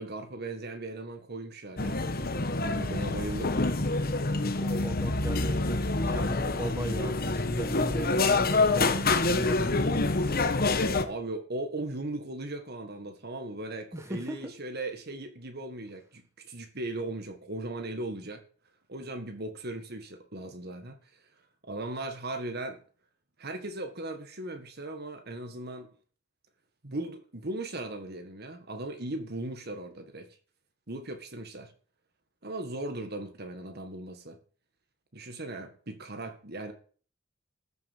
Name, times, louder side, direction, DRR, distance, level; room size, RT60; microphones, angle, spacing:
voice 1, 0.0-2.0 2.7-3.6 11.0-18.4 18.9-21.2 21.6-22.8 23.4-25.9 26.8-30.3 30.9-31.7 32.4-34.4 35.1-36.7, right 2 dB, 50° right, 1.7 m, -38 dB
sound 1, 1.8-11.1, left 3 dB, 45° left, 1.2 m, -27 dB
voice 2, 4.3-10.0 13.9-14.5, equal, 15° right, 1.5 m, -38 dB
14.0 x 6.9 x 7.4 m
head